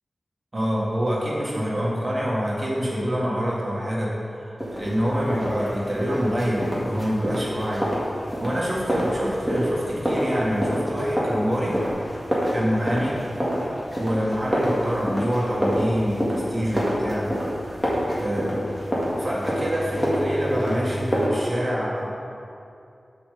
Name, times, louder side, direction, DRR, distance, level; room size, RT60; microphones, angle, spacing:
voice 1, 0.5-7.9 8.4-11.8 12.5-13.1 14.0-17.3 18.2-18.7 19.2-22.1, equal, 30° right, -5 dB, 1.7 m, -26 dB
sound 1, 4.6-21.3, equal, 5° left, 2.0 m, -28 dB
7.7 x 5.0 x 6.7 m, 2.6 s
wide cardioid pair, 110°, 0 cm